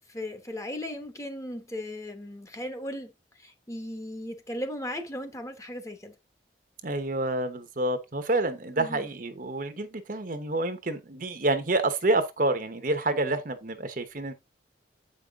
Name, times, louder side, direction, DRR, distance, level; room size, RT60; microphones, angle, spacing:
voice 1, 0.0-6.2 8.8-9.1, left 1 dB, 15° left, 1.2 m, -37 dB
voice 2, 6.8-14.3, right 2 dB, 45° right, 1.0 m, -28 dB
8.2 x 5.4 x 3.6 m
head